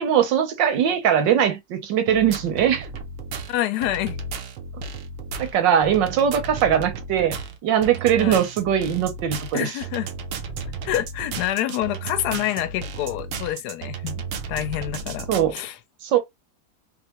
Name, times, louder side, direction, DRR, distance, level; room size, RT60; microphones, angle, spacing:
voice 1, 0.0-2.9 5.4-9.7 15.3-15.5 16.0-16.2, right 9 dB, 90° right, 1.5 m, -21 dB
sound 1, 2.1-15.6, right 4 dB, 70° right, 0.7 m, -34 dB
voice 2, 3.5-4.2 8.2-8.4 9.5-10.1 10.8-14.2 14.5-15.8, left 13 dB, 70° left, 1.0 m, -27 dB
3.3 x 2.5 x 2.9 m
omnidirectional pair, 1.9 m